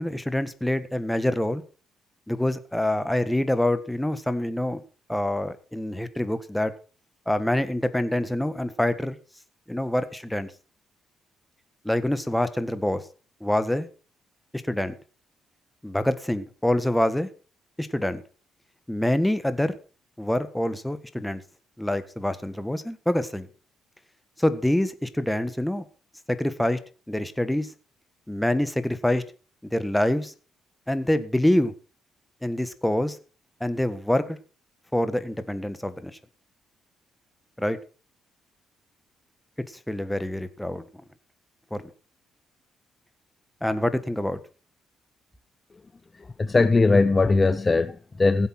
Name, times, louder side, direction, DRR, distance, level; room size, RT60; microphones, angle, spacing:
voice 1, 0.0-1.6 2.3-4.8 5.1-6.7 7.2-9.2 9.7-10.5 11.8-13.0 13.4-13.9 14.6-14.9 15.8-17.3 17.8-18.2 18.9-19.8 20.2-21.4 21.8-23.5 24.4-25.8 26.3-26.8 27.1-27.7 28.3-29.2 29.7-30.3 30.9-31.7 32.4-33.2 33.6-34.4 34.9-36.1 37.6-37.8 39.9-40.8 41.7-41.8 43.6-44.4, left 1 dB, 5° left, 1.6 m, -26 dB
voice 2, 46.1-48.5, left 3 dB, 25° left, 0.7 m, -20 dB
16.0 x 8.1 x 6.1 m
cardioid pair, 90°, 0 cm